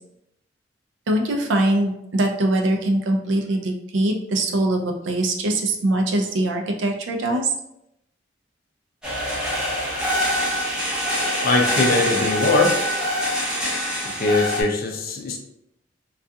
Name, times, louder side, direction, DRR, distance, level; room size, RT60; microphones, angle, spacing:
voice 1, 1.1-7.5, right 1 dB, 80° right, 3 dB, 0.4 m, -22 dB
sound 1, 9.0-14.6, equal, 5° right, 0.7 m, -24 dB
voice 2, 11.4-12.8 14.2-15.4, left 3 dB, 55° left, 2 dB, 0.4 m, -21 dB
2.3 x 2.3 x 2.6 m, 0.80 s
head